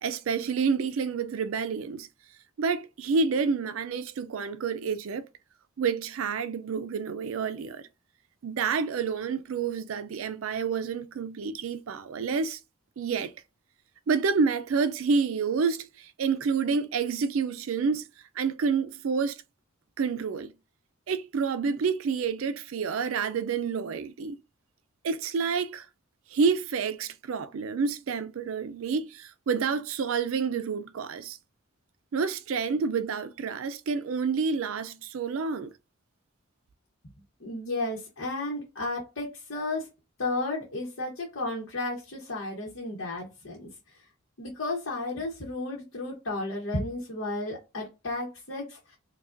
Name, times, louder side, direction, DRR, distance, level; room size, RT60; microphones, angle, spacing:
voice 1, 0.0-2.1 2.6-5.2 5.8-7.9 8.4-12.6 13.0-13.3 14.1-18.1 18.4-19.4 20.0-20.5 21.1-24.4 25.0-25.9 26.3-31.4 32.1-35.7, right 5 dB, 80° right, 0.4 m, -28 dB
voice 2, 37.4-39.9 40.2-43.7 44.4-49.0, left 2 dB, 70° left, 1.0 m, -33 dB
4.8 x 2.3 x 2.5 m
head